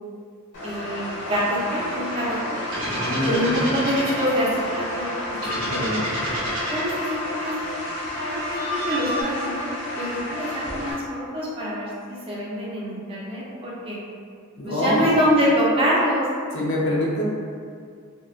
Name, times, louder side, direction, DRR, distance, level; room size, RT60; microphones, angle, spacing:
sound 1, 0.5-10.9, left 1 dB, 80° left, 0.9 m, -31 dB
voice 1, 0.6-2.6 3.3-6.1 6.7-7.7 8.2-8.4 8.7-14.0 14.7-16.3, equal, 25° right, -7 dB, 0.4 m, -25 dB
sound 2, 2.7-4.3 5.4-7.0 8.1-9.2, equal, 60° right, 0.7 m, -30 dB
voice 2, 2.8-3.5 5.5-6.1 14.6-15.1 16.5-17.2, left 1 dB, 60° left, -5 dB, 0.5 m, -25 dB
2.9 x 2.0 x 2.3 m, 2.2 s
head